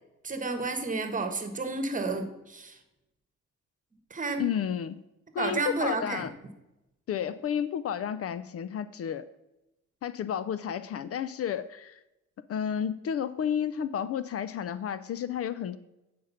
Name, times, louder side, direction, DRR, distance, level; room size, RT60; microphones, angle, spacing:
voice 1, 0.2-2.8 4.1-4.4 5.4-6.3, right 3 dB, 25° right, 8 dB, 1.3 m, -31 dB
voice 2, 4.4-5.0 5.3-6.3 7.1-9.3 10.0-12.0 12.5-15.8, left 8 dB, 50° left, 15 dB, 0.5 m, -31 dB
8.6 x 5.1 x 5.5 m, 0.94 s
cardioid pair, 90°, 30 cm